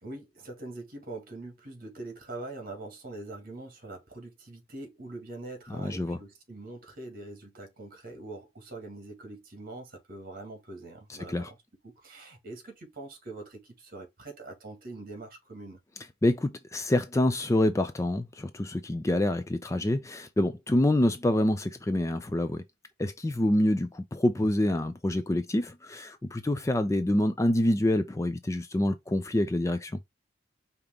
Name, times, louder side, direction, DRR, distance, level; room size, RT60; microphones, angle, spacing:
voice 1, 0.0-11.6 11.8-15.8, right 2 dB, 50° right, 1.8 m, -43 dB
voice 2, 5.8-6.2 11.3-11.5 16.2-22.6 23.0-30.0, left 1 dB, 15° left, 0.4 m, -26 dB
5.1 x 2.9 x 3.5 m
head